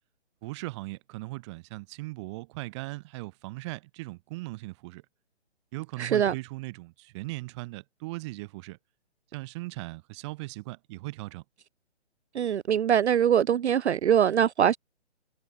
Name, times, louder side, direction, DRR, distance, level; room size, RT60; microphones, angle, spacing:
voice 1, 0.4-5.0 5.7-8.8 9.3-11.4, right 22 dB, 25° right, 1.6 m, -38 dB
voice 2, 6.0-6.3 12.3-14.8, right 9 dB, 70° right, 0.5 m, -23 dB
figure-of-eight pair, 140°, 35 cm